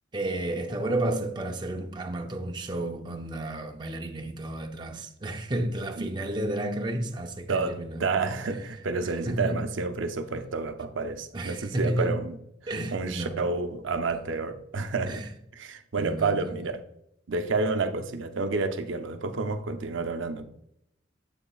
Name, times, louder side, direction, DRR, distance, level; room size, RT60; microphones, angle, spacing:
voice 1, 0.1-8.1 9.3-9.6 11.3-12.2 12.7-13.4 15.1-15.3 16.0-16.5, right 1 dB, 25° right, 0.5 m, -31 dB
voice 2, 7.5-12.4 12.6-15.2 15.6-16.8 17.3-20.5, right 3 dB, 75° right, 0.6 m, -30 dB
7.7 x 6.9 x 2.4 m
head